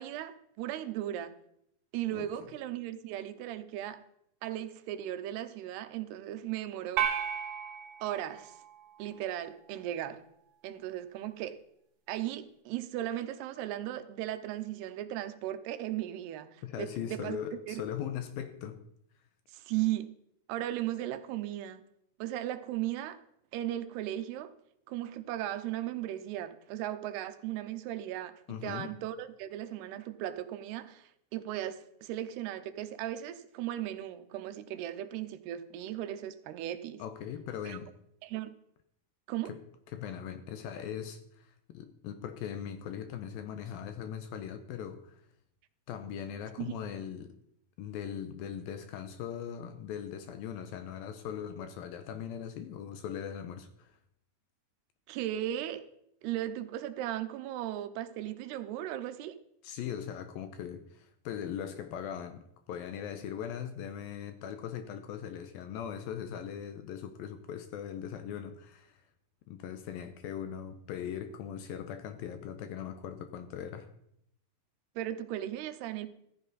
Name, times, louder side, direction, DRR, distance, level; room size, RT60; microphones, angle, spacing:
voice 1, 0.0-1.3 1.9-4.0 4.4-7.1 8.0-8.6 9.0-10.2 10.6-11.6 12.1-17.4 17.7-17.8 19.5-20.1 20.5-21.8 22.2-23.2 23.5-24.5 24.9-37.0 37.6-37.8 38.2-38.5 39.3-39.6 46.6-46.7 55.1-55.9 56.2-59.4 75.0-76.1, right 12 dB, 80° right, 2.8 m, -37 dB
sound 1, 7.0-9.4, right 9 dB, 65° right, 2.1 m, -35 dB
voice 2, 16.6-18.8 28.5-28.9 37.0-37.9 39.5-39.6 39.9-45.2 45.9-47.4 47.8-54.0 59.6-69.0 69.5-73.9, left 9 dB, 75° left, 2.3 m, -40 dB
14.5 x 14.5 x 4.0 m
omnidirectional pair, 4.7 m